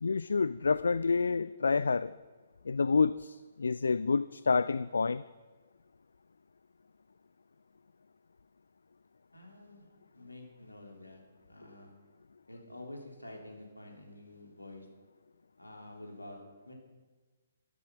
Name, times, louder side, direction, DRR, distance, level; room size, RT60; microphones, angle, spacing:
voice 1, 0.0-2.1 2.6-5.2, left 4 dB, 65° left, 17 dB, 0.3 m, -28 dB
voice 2, 9.3-9.9 10.1-11.9 12.5-14.9 15.6-16.4 16.6-16.7, left 1 dB, 80° left, 1 dB, 3.2 m, -49 dB
12.5 x 12.5 x 5.9 m, 1.3 s
figure-of-eight pair, 130°, 0 cm